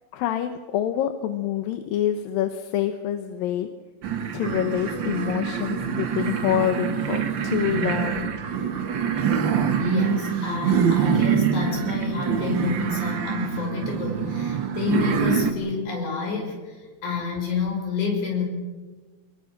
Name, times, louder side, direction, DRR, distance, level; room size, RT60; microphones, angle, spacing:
voice 1, 0.1-3.7 4.3-8.3, left 11 dB, 85° left, 8 dB, 2.7 m, -26 dB
sound 1, 4.0-15.5, right 7 dB, 60° right, 1.2 m, -25 dB
voice 2, 9.8-18.4, left 5 dB, 60° left, 1 dB, 6.6 m, -29 dB
24.0 x 21.0 x 6.5 m, 1.3 s
omnidirectional pair, 4.0 m